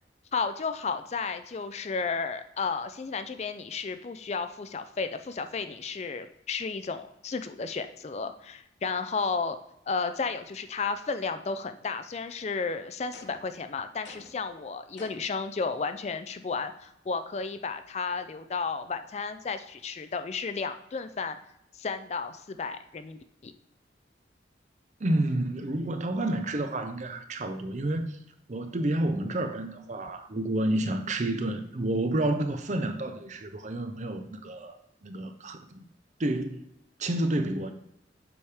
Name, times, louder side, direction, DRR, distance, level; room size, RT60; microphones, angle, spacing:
voice 1, 0.3-9.6 9.9-21.4 21.8-23.5, left 4 dB, 35° left, 0.4 m, -33 dB
sound 1, 13.1-13.6 14.0-14.5 15.0-15.4, left 2 dB, 85° left, 1.1 m, -49 dB
voice 2, 25.0-28.2 28.5-35.8 36.2-36.7 37.0-37.7, right 1 dB, 40° right, 0.6 m, -30 dB
7.0 x 4.9 x 3.4 m
head